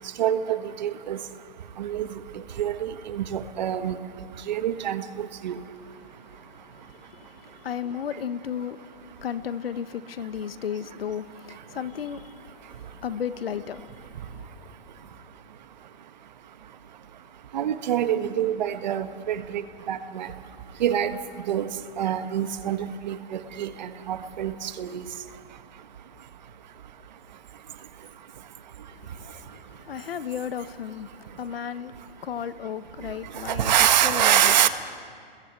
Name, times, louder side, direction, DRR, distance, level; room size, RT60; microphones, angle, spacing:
voice 1, 0.2-1.2 1.8-2.1 2.6-4.0 4.5-5.6 17.5-19.6 19.9-20.3 20.8-21.1 21.5-21.7 22.0-25.0 33.5-34.7, right 10 dB, 45° right, 1.4 m, -25 dB
voice 2, 6.0-14.5 28.9-29.5 29.8-33.7 34.0-34.7, left 8 dB, 75° left, 1.3 m, -35 dB
29.5 x 21.5 x 8.0 m
hypercardioid pair, 170°, 30 cm